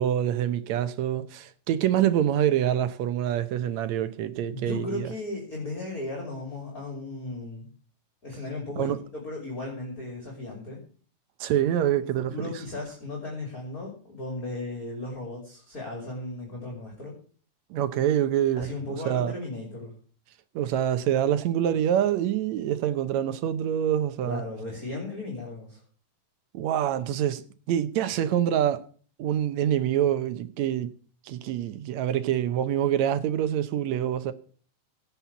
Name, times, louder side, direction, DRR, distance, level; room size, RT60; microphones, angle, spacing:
voice 1, 0.0-5.1 8.8-9.0 11.4-12.3 17.7-18.7 19.1-19.3 20.6-24.4 26.5-27.4 27.7-28.8 29.2-30.9 31.3-34.3, right 10 dB, 75° right, 2.0 m, -25 dB
voice 2, 4.5-7.7 8.2-10.8 12.3-17.1 18.6-19.9 24.2-25.8, left 2 dB, 30° left, 3.2 m, -36 dB
17.0 x 5.9 x 6.9 m
omnidirectional pair, 3.4 m